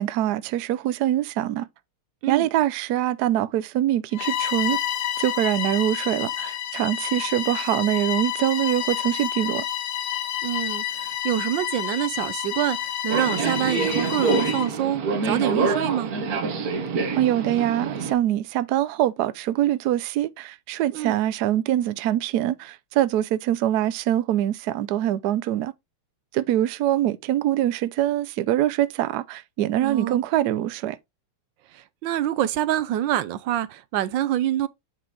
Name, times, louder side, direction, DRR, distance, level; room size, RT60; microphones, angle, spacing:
voice 1, 0.0-1.7 2.3-4.8 5.2-9.6 17.2-25.7 26.3-31.0, right 12 dB, 90° right, 0.8 m, -24 dB
Bowed string instrument, 4.1-14.8, left 11 dB, 70° left, 1.0 m, -29 dB
voice 2, 10.4-16.1 20.9-21.2 29.8-30.2 32.0-34.7, right 12 dB, 70° right, 1.2 m, -26 dB
Subway metro underground, 13.1-18.1, right 4 dB, 50° right, 1.3 m, -26 dB
8.6 x 4.7 x 3.7 m
omnidirectional pair, 2.4 m